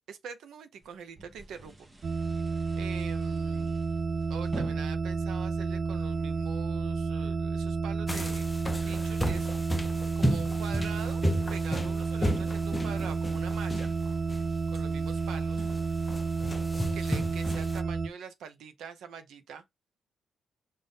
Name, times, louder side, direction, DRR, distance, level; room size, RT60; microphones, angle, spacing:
voice 1, 0.1-1.9 2.1-2.2 2.8-3.8 4.3-8.5 8.9-11.2 11.5-13.9 14.7-15.7 16.9-19.6, right 7 dB, 85° right, 0.7 m, -44 dB
sound 1, 0.8-6.6, right 2 dB, 20° right, 0.8 m, -46 dB
sound 2, 2.0-18.1, right 4 dB, 45° right, 0.5 m, -31 dB
sound 3, 8.1-17.8, equal, 10° left, 0.6 m, -34 dB
5.4 x 2.6 x 3.6 m
cardioid pair, 125°, 0 cm